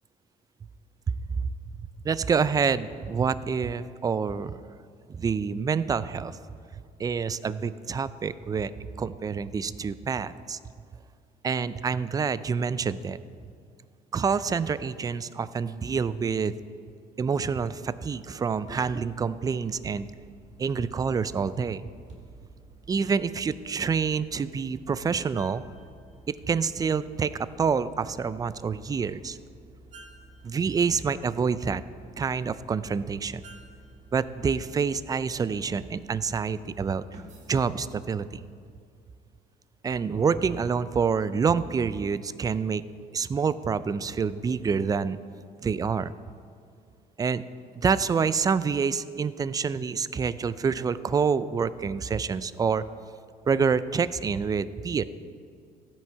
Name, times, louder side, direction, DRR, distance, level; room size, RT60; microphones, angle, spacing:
voice 1, 2.0-4.6 5.1-6.4 7.0-10.6 11.4-13.2 14.1-16.5 17.2-20.1 20.6-21.8 22.9-25.6 26.3-29.4 30.4-31.8 32.2-33.4 34.1-37.0 37.5-38.4 39.8-42.8 43.1-45.2 45.6-46.1 47.2-47.4 47.7-52.8 53.5-55.0, right 6 dB, 20° right, 15 dB, 0.3 m, -27 dB
sound 1, 18.2-38.1, right 2 dB, 45° right, 1.9 m, -51 dB
15.5 x 6.0 x 4.6 m, 2.3 s
cardioid pair, 110°, 17 cm